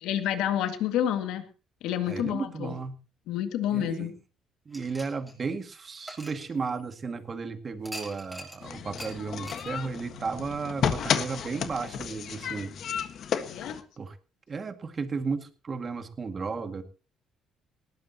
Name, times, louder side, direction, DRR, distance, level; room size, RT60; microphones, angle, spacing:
voice 1, 0.0-1.4 1.8-2.8 3.3-4.1 13.5-13.8, left 10 dB, 85° left, 8 dB, 2.2 m, -29 dB
voice 2, 2.1-2.9 3.7-4.2 4.7-12.7 14.0-14.2 14.5-16.8, right 4 dB, 30° right, 7 dB, 2.1 m, -34 dB
sound 1, 4.7-7.1 7.8-8.6 9.0-9.1 9.4-9.7, equal, ahead, 5.2 m, -43 dB
sound 2, 8.6-13.8, left 8 dB, 55° left, 1.5 m, -32 dB
19.5 x 16.5 x 3.0 m, 0.35 s
cardioid pair, 120°, 0 cm